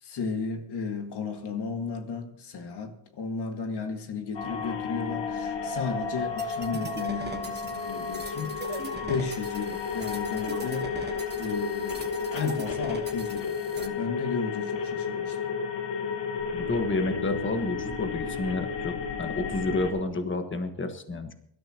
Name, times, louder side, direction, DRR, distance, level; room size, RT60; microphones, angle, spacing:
voice 1, 0.0-11.0 11.4-15.4, left 5 dB, 70° left, 2.0 m, -34 dB
sound 1, 4.3-19.9, left 5 dB, 90° left, 1.7 m, -32 dB
sound 2, 6.4-13.9, right 4 dB, 25° right, 1.2 m, -41 dB
voice 2, 16.5-18.9 19.2-21.3, left 2 dB, 30° left, 1.4 m, -30 dB
23.5 x 12.5 x 3.0 m
wide cardioid pair, 130°, 42 cm